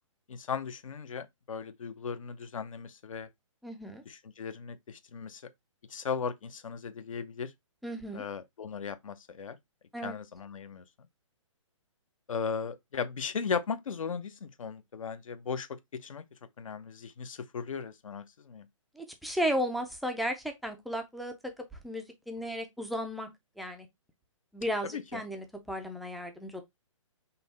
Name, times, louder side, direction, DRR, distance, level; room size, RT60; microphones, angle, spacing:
voice 1, 0.3-3.3 4.1-5.4 5.9-7.5 8.1-9.6 10.0-10.8 12.3-16.2 16.6-18.7 24.9-25.2, left 6 dB, 80° left, 0.8 m, -37 dB
voice 2, 3.6-4.0 7.8-8.2 9.9-10.2 19.0-21.5 21.8-23.3 23.6-23.9 24.5-26.6, equal, ahead, 0.3 m, -34 dB
5.5 x 2.2 x 4.0 m
hypercardioid pair, 155°, 17 cm